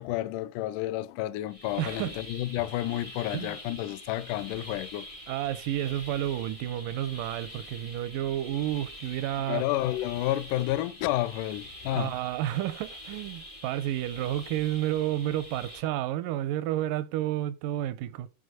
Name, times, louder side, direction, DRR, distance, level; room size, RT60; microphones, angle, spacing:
voice 1, 0.0-5.1 9.5-12.1, left 15 dB, 80° left, 1.9 m, -30 dB
sound 1, 1.5-15.8, left 1 dB, 25° left, 0.7 m, -45 dB
voice 2, 1.8-2.1 3.3-3.6 5.3-9.6 11.9-18.3, right 13 dB, 80° right, 2.0 m, -31 dB
6.4 x 5.3 x 6.1 m
omnidirectional pair, 4.2 m